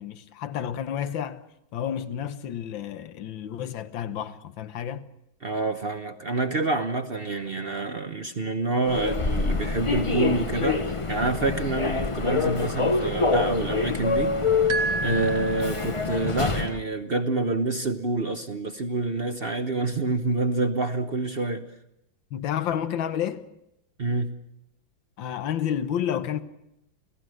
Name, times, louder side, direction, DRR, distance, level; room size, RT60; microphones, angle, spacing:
voice 1, 0.0-1.4 1.7-5.0 15.0-15.3 22.3-23.5 25.2-26.4, left 9 dB, 70° left, 1.8 m, -30 dB
voice 2, 5.4-14.4 15.0-21.7 24.0-24.4, right 2 dB, 40° right, 0.9 m, -27 dB
Human voice / Subway metro underground, 8.8-16.8, left 4 dB, 45° left, 0.4 m, -26 dB
sound 1, 14.7-16.3, right 4 dB, 60° right, 1.9 m, -30 dB
29.0 x 17.5 x 6.3 m
omnidirectional pair, 2.2 m